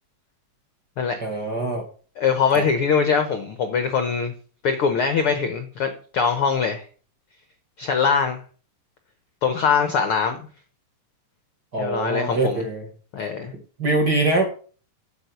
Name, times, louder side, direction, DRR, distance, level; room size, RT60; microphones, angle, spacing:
voice 1, 1.2-1.9 2.5-2.7 11.7-12.9 13.5-14.4, right 2 dB, 40° right, 2 dB, 1.8 m, -23 dB
voice 2, 2.2-4.3 4.6-6.8 7.8-8.4 9.4-10.4 11.8-12.6 13.1-13.5, left 6 dB, 65° left, 7 dB, 1.4 m, -22 dB
8.9 x 5.6 x 8.1 m, 0.40 s
omnidirectional pair, 3.8 m